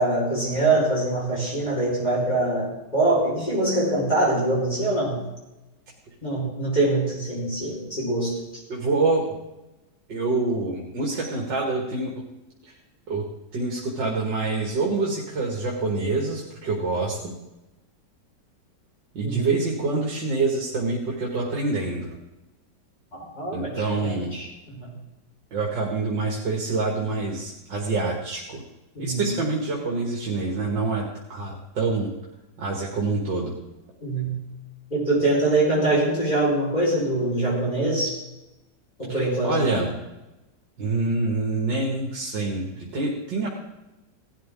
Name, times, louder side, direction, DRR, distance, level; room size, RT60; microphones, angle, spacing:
voice 1, 0.0-5.2 6.2-8.4 19.2-19.6 23.1-24.9 29.0-29.3 34.0-34.4 34.9-38.2 39.0-39.8, right 2 dB, 20° left, -6 dB, 5.2 m, -24 dB
voice 2, 8.7-9.3 10.1-12.1 13.1-13.2 13.5-17.3 19.1-22.1 23.5-24.3 25.5-28.6 29.0-32.1 32.6-33.5 39.1-39.9 40.8-42.6 42.9-43.5, right 3 dB, 80° right, -2 dB, 2.9 m, -26 dB
18.0 x 13.0 x 3.8 m, 1.0 s
omnidirectional pair, 1.9 m